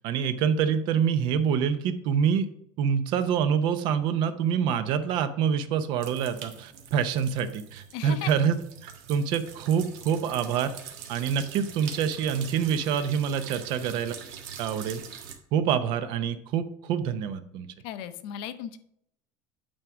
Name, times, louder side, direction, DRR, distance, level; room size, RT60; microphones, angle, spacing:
voice 1, 0.0-2.5 2.8-8.6 8.8-14.2 14.6-15.0 15.5-17.7, right 7 dB, 50° right, 11 dB, 0.7 m, -26 dB
sound 1, 6.0-15.3, right 7 dB, 70° right, 1.5 m, -44 dB
voice 2, 7.9-8.3 17.8-18.8, left 10 dB, 60° left, 11 dB, 0.7 m, -36 dB
8.7 x 3.6 x 6.1 m, 0.70 s
cardioid pair, 160°, 10 cm